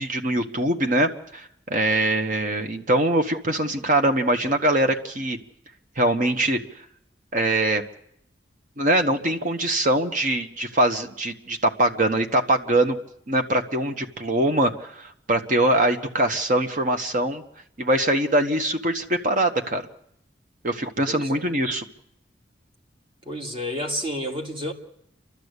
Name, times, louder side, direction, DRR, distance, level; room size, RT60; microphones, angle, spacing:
voice 1, 0.0-5.4 6.0-6.6 7.3-7.8 8.8-13.0 13.3-17.4 17.8-19.8 20.6-21.8, right 1 dB, 45° right, 6 dB, 1.4 m, -23 dB
voice 2, 21.1-21.5 23.3-24.7, equal, 30° right, 2 dB, 2.2 m, -30 dB
29.0 x 12.0 x 8.3 m, 0.75 s
head